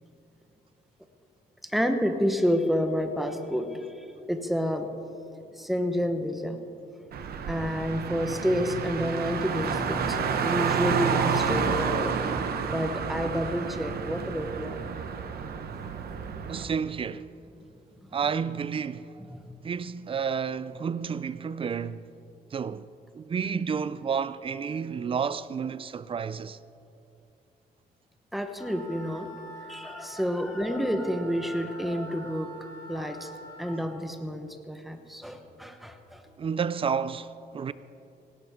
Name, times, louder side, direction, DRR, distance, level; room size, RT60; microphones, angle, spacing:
voice 1, 1.6-4.9 5.5-6.6 7.5-12.1 12.7-14.8 16.0-16.1 18.0-18.1 19.3-19.5 28.3-29.3 29.6-33.3 33.6-36.3, equal, ahead, 1.0 m, -29 dB
Car, 7.1-16.6, right 6 dB, 65° right, 1.0 m, -30 dB
voice 2, 16.5-17.3 18.1-19.1 19.6-22.0 22.5-22.9 23.1-26.6 36.4-37.7, right 6 dB, 30° right, 0.4 m, -30 dB
Wind instrument woodwind instrument, 28.5-33.8, equal, 15° left, 3.4 m, -45 dB
17.5 x 17.0 x 3.6 m
cardioid pair, 135°, 18 cm